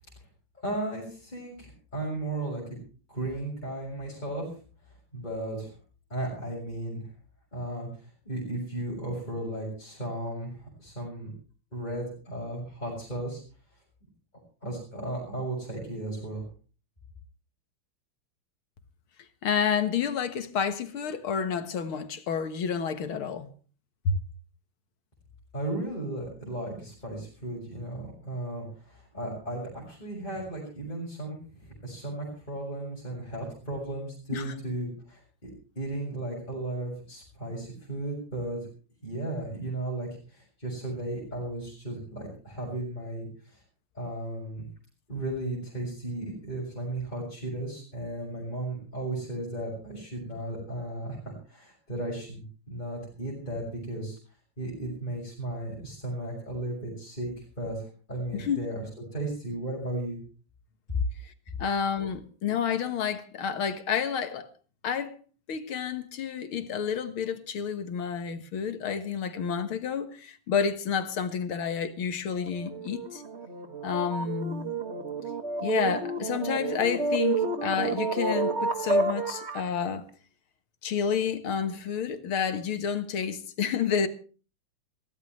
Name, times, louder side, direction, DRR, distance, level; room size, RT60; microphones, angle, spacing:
voice 1, 0.6-2.6 3.1-4.4 5.1-5.7 6.1-7.0 7.5-7.9 8.2-11.3 11.7-13.4 14.6-16.4 25.5-38.7 39.0-43.6 43.9-44.7 45.1-51.2 51.5-54.2 54.6-57.3 57.6-57.8 58.1-58.8 59.1-60.2, right 1 dB, 20° left, 6.7 m, -35 dB
voice 2, 19.4-23.5 24.1-24.2 34.3-34.5 58.3-58.6 61.2-61.3 61.6-64.5 64.8-65.2 65.5-73.2 73.8-74.7 75.6-80.0 80.8-84.1, left 7 dB, 75° left, 2.3 m, -30 dB
sound 1, 72.4-79.7, right 3 dB, 30° right, 2.0 m, -30 dB
23.0 x 16.0 x 3.2 m
omnidirectional pair, 2.4 m